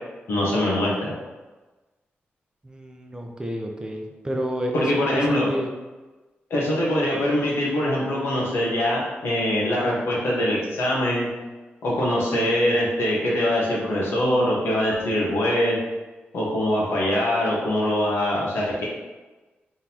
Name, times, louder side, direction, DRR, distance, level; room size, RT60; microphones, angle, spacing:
voice 1, 0.3-1.1 4.7-5.5 6.5-11.3 11.8-15.8 16.3-18.8, left 1 dB, 85° left, -5 dB, 1.3 m, -23 dB
voice 2, 2.6-5.8, equal, 20° right, 2 dB, 0.5 m, -30 dB
3.7 x 3.7 x 2.9 m, 1.2 s
cardioid pair, 95°, 4 cm